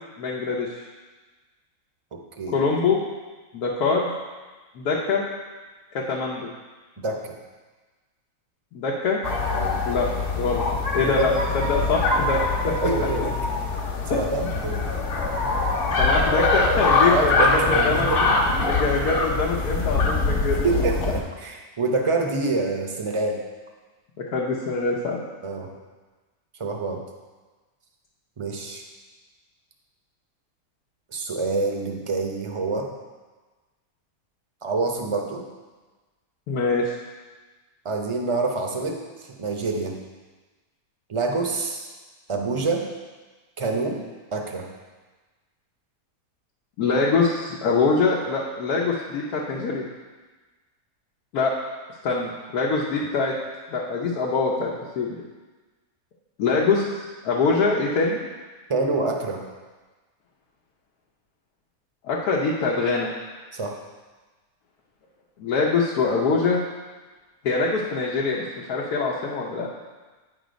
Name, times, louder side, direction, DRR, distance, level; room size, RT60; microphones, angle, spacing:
voice 1, 0.2-0.7 2.5-3.0 3.5-4.1 4.7-5.3 5.9-6.5 8.7-9.2 9.9-10.6 10.9-13.1 14.1-14.5 16.0-18.1 18.6-20.7 24.3-25.2 36.5-37.0 46.8-49.9 51.3-51.5 52.0-53.3 53.7-55.2 56.4-56.9 57.2-58.3 62.0-63.1 65.4-66.6 67.4-68.4 68.7-69.7, left 4 dB, 90° left, -4 dB, 1.3 m, -24 dB
voice 2, 2.1-2.6 7.0-7.3 9.5-9.8 11.0-11.3 12.8-13.3 14.1-14.9 17.1-18.7 20.6-23.4 25.4-25.7 26.6-27.0 28.4-28.8 31.1-32.9 34.6-35.5 37.8-40.0 41.1-41.9 42.3-42.9 43.6-44.0 44.3-44.7 58.7-59.4 63.5-63.8, right 3 dB, 35° right, 2 dB, 0.5 m, -26 dB
sound 1, 9.2-21.2, left 3 dB, 55° left, 1.2 m, -23 dB
9.2 x 4.0 x 5.1 m, 1.3 s
omnidirectional pair, 1.6 m